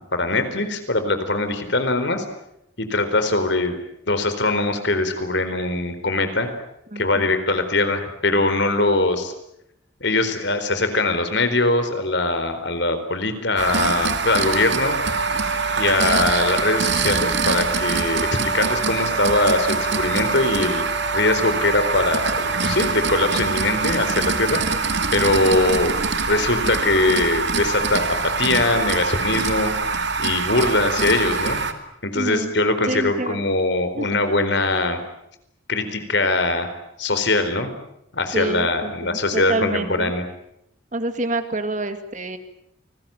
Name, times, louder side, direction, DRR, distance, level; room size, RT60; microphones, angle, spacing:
voice 1, 0.1-2.2 2.8-3.8 4.1-6.5 7.0-9.3 10.0-15.0 15.8-20.8 21.1-26.0 26.3-29.7 30.2-31.6 32.0-35.0 35.7-36.7 37.0-37.7 38.1-40.2, left 2 dB, 60° left, 9 dB, 4.2 m, -22 dB
voice 2, 6.9-7.3 32.1-32.5 32.8-33.4 34.0-34.2 38.3-40.1 40.9-42.4, right 2 dB, 40° right, 9 dB, 2.2 m, -27 dB
sound 1, 13.6-31.7, right 4 dB, 60° right, 2.4 m, -24 dB
sound 2, 14.4-25.4, right 5 dB, 20° left, 2.3 m, -34 dB
29.0 x 20.5 x 8.9 m, 0.78 s
head